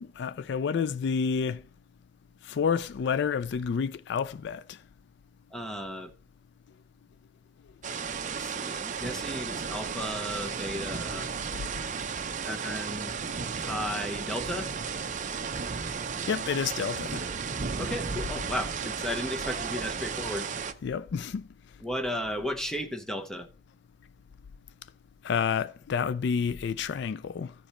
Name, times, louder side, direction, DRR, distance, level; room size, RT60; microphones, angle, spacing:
voice 1, 0.0-1.6 2.4-4.8 16.3-17.2 20.8-21.5 25.2-27.5, left 6 dB, 65° left, 0.4 m, -29 dB
voice 2, 5.5-6.1 8.3-11.3 12.4-13.1 13.6-14.7 17.8-20.5 21.8-23.5, equal, 5° left, 0.9 m, -34 dB
sound 1, 7.8-20.7, right 5 dB, 40° right, 0.6 m, -34 dB
14.5 x 5.0 x 4.2 m
head